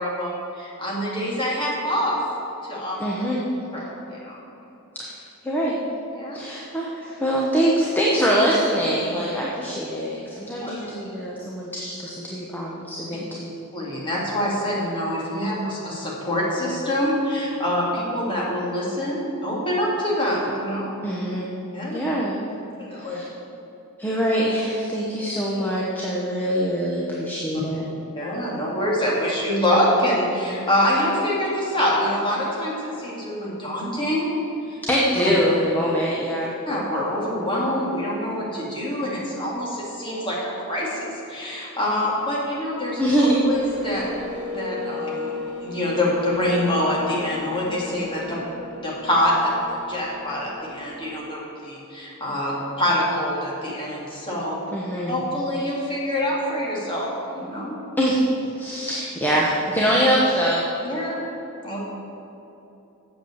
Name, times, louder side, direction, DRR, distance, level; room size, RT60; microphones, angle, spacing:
voice 1, 0.0-2.2 2.6-3.0 3.7-3.8 4.1-4.4 6.1-6.4 10.6-10.8 13.7-20.9 21.7-22.0 22.8-23.2 28.1-34.3 34.7-34.8 36.7-43.0 43.5-44.1 44.4-48.4 48.7-54.6 55.1-57.8 60.8-61.2 61.6-61.8, left 1 dB, 25° left, -5 dB, 2.4 m, -25 dB
voice 2, 3.0-3.4 5.0-5.2 5.4-5.8 6.3-13.5 21.0-21.5 21.9-22.4 23.0-23.2 24.0-27.8 34.8-36.5 43.0-43.4 54.7-55.1 58.0-58.2 58.6-60.7, equal, 10° left, -5 dB, 1.0 m, -23 dB
sound 1, 42.9-51.3, left 2 dB, 55° right, 2.1 m, -37 dB
8.1 x 7.5 x 7.3 m, 2.9 s
head